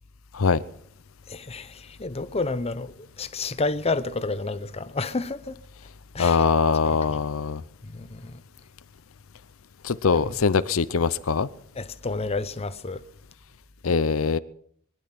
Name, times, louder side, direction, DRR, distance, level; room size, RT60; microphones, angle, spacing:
voice 1, 1.3-5.6 6.1-6.5 6.8-7.3 7.8-8.4 10.1-10.4 11.8-13.0, left 3 dB, 30° left, 0.8 m, -30 dB
voice 2, 6.2-7.6 9.8-11.5 13.8-14.4, left 5 dB, 85° left, 0.6 m, -22 dB
22.0 x 10.5 x 5.9 m
head